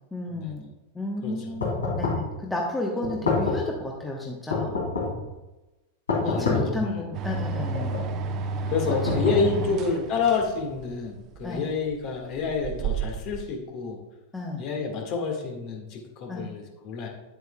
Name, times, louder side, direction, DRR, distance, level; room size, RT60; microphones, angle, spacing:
voice 1, 0.1-0.7 0.9-4.8 6.2-7.9 8.6-8.7 9.4-9.7 11.4-11.6 14.3-14.7 16.3-16.5, left 2 dB, 10° left, -1 dB, 1.0 m, -32 dB
voice 2, 1.2-1.6 6.2-7.4 8.7-14.0 14.6-17.1, left 5 dB, 40° left, 1 dB, 1.6 m, -29 dB
sound 1, 1.6-2.3 3.0-3.7 4.5-5.3 6.1-6.8 7.5-8.1 8.9-9.8, left 3 dB, 70° left, 2.6 m, -27 dB
sound 2, 7.1-13.4, right 4 dB, 35° right, 0.9 m, -32 dB
9.6 x 8.0 x 2.2 m, 1.1 s
figure-of-eight pair, 90°, 0 cm